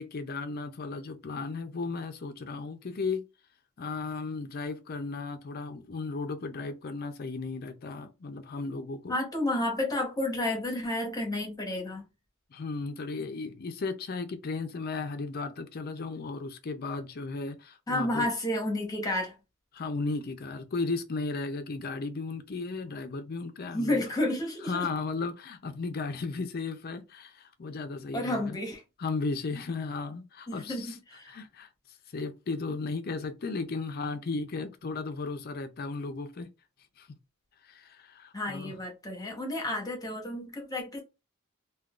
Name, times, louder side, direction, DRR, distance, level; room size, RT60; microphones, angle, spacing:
voice 1, 0.0-3.2 3.8-9.2 12.5-18.3 19.7-24.0 24.6-28.6 29.0-31.0 31.3-36.5 37.0-37.2 37.6-38.8, left 3 dB, 45° left, 0.5 m, -35 dB
voice 2, 9.1-12.0 17.9-19.3 23.7-24.7 28.1-28.8 30.5-31.4 38.3-41.0, left 1 dB, 20° left, 0.9 m, -31 dB
3.6 x 2.3 x 2.3 m
head